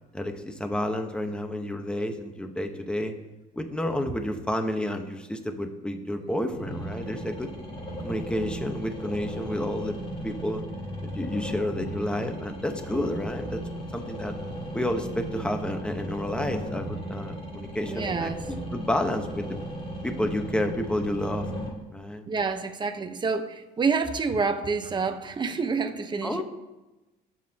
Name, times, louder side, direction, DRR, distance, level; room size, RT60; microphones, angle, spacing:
voice 1, 0.1-3.1 3.5-7.5 8.0-9.9 10.2-10.6 11.1-13.6 13.9-14.4 14.7-19.6 20.0-21.5 21.9-22.3 26.2-26.4, left 1 dB, 5° left, 5 dB, 1.2 m, -30 dB
sound 1, 6.5-21.7, right 1 dB, 35° left, 3.8 m, -36 dB
voice 2, 17.9-18.4 22.3-26.4, right 4 dB, 25° right, 7 dB, 1.0 m, -28 dB
22.0 x 7.5 x 2.9 m, 1.1 s
cardioid pair, 110°, 17 cm